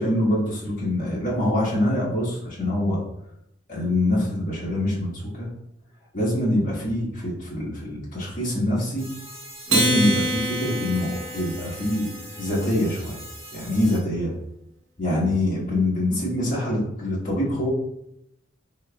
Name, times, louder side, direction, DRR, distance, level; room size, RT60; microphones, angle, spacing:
voice 1, 0.0-3.0 3.7-5.5 6.1-9.1 9.7-13.2 13.5-14.3 15.0-17.7, left 1 dB, 45° left, -8 dB, 1.4 m, -24 dB
sound 1, 9.0-14.0, equal, 15° right, 1.2 m, -42 dB
Acoustic guitar, 9.7-12.3, right 1 dB, 75° right, 1.0 m, -26 dB
4.6 x 3.3 x 2.3 m, 0.81 s
head